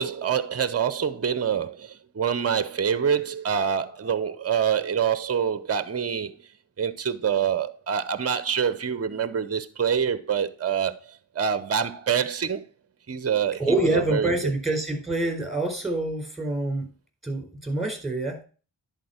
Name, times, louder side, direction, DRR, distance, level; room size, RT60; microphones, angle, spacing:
voice 1, 0.0-6.3 6.8-12.7 13.1-14.3, right 7 dB, 35° right, 0.8 m, -26 dB
voice 2, 13.6-16.9 17.2-18.4, right 2 dB, ahead, 4.4 m, -26 dB
10.5 x 4.4 x 4.3 m
cardioid pair, 45°, 45 cm